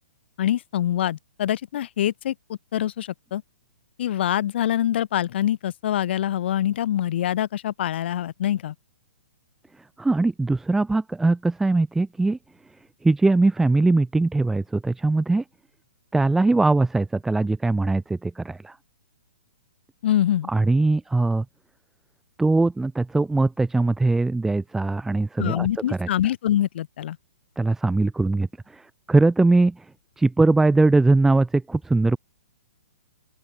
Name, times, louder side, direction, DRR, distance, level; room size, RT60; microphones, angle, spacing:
voice 1, 0.4-3.4 4.0-8.7 20.0-20.5 25.4-27.2, left 11 dB, 55° left, 3.2 m, -25 dB
voice 2, 10.0-12.4 13.0-15.4 16.1-18.8 20.5-21.4 22.4-26.1 27.6-29.8 30.2-32.2, right 2 dB, 5° right, 1.2 m, -21 dB
open air
hypercardioid pair, 135°, 7 cm